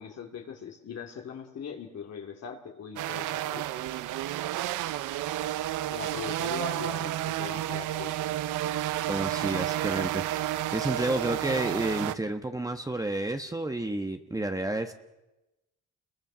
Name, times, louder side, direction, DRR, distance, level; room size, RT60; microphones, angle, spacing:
voice 1, 0.0-3.6 5.9-8.1, left 7 dB, 60° left, 1 dB, 2.6 m, -40 dB
sound 1, 3.0-12.1, right 13 dB, 85° right, 0.8 m, -31 dB
voice 2, 9.1-14.9, right 2 dB, 10° right, 6 dB, 1.3 m, -31 dB
29.0 x 22.0 x 6.2 m, 0.99 s
cardioid pair, 90°, 30 cm